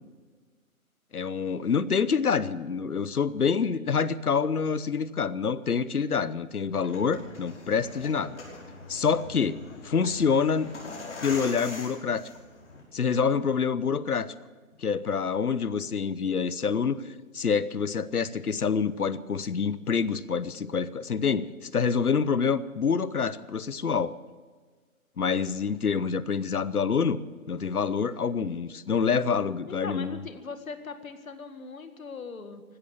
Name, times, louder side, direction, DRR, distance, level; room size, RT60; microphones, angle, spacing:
voice 1, 1.1-8.4 8.9-10.7 11.2-12.3 12.9-14.3 14.8-24.1 25.2-27.2 27.5-30.2, left 6 dB, 90° left, 17 dB, 1.0 m, -27 dB
sound 1, 6.6-12.8, left 3 dB, 50° left, 5.6 m, -42 dB
voice 2, 29.7-32.6, left 5 dB, 70° left, 9 dB, 1.9 m, -40 dB
16.0 x 12.5 x 7.2 m, 1.5 s
figure-of-eight pair, 155°, 43 cm